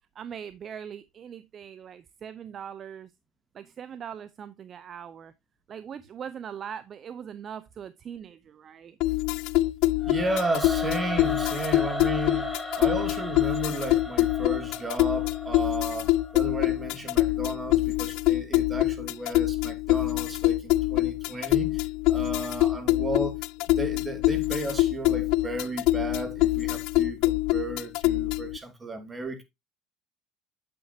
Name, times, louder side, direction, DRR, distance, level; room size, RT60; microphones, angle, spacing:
voice 1, 0.1-3.1 3.5-5.3 5.7-9.0, right 8 dB, 40° right, 0.6 m, -41 dB
sound 1, 9.0-28.6, left 17 dB, 70° left, 0.4 m, -25 dB
Singing / Musical instrument, 10.0-17.1, left 1 dB, 5° left, 2.7 m, -36 dB
voice 2, 10.0-12.5 12.8-23.4 23.7-29.4, right 2 dB, 20° right, 2.4 m, -34 dB
8.7 x 7.9 x 2.8 m
supercardioid pair, 105°, 0 cm